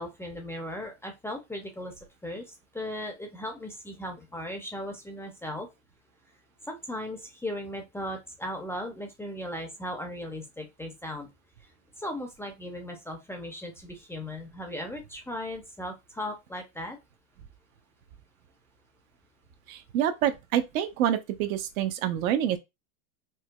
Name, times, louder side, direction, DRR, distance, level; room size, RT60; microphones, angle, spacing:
voice 1, 0.0-1.9 2.2-5.7 6.7-11.3 12.0-17.0, left 1 dB, 5° left, 0.4 m, -37 dB
voice 2, 19.7-22.6, right 10 dB, 75° right, 0.7 m, -27 dB
4.6 x 2.2 x 2.2 m
supercardioid pair, 125°, 42 cm